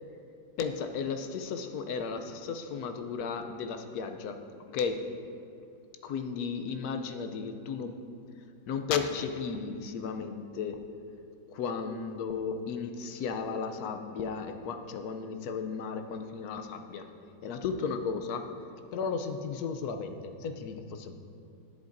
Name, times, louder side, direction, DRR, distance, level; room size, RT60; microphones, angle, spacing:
voice 1, 0.6-4.4 4.7-5.0 6.0-8.0 8.7-10.8 11.5-17.1 17.4-18.5 18.9-21.2, left 5 dB, 70° left, 6 dB, 0.9 m, -34 dB
11.5 x 10.5 x 2.6 m, 2.5 s
omnidirectional pair, 2.0 m